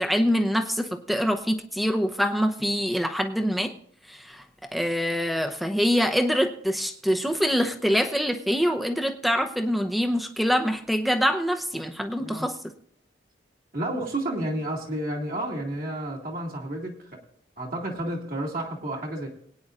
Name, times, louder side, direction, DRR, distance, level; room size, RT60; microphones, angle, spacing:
voice 1, 0.0-3.7 4.1-12.5, equal, ahead, 6 dB, 0.7 m, -25 dB
voice 2, 13.7-16.9 17.6-19.3, right 1 dB, 50° right, -2 dB, 2.3 m, -31 dB
22.5 x 9.4 x 2.5 m, 0.64 s
head